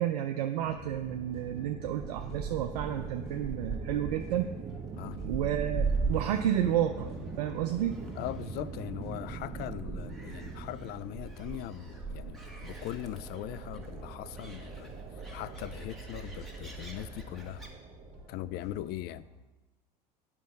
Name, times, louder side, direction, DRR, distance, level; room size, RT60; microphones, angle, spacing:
voice 1, 0.0-4.5 5.3-8.0, right 11 dB, 80° right, 0.5 m, -31 dB
sound 1, 0.5-19.4, left 3 dB, 30° left, 2.2 m, -56 dB
sound 2, 0.6-18.8, right 4 dB, 30° right, 0.9 m, -44 dB
Gull seagull, 2.0-17.7, right 4 dB, ahead, 1.7 m, -40 dB
voice 2, 5.0-5.3 8.2-17.6 18.3-19.3, left 14 dB, 50° left, 0.4 m, -40 dB
8.2 x 5.5 x 5.3 m
hypercardioid pair, 80°, 21 cm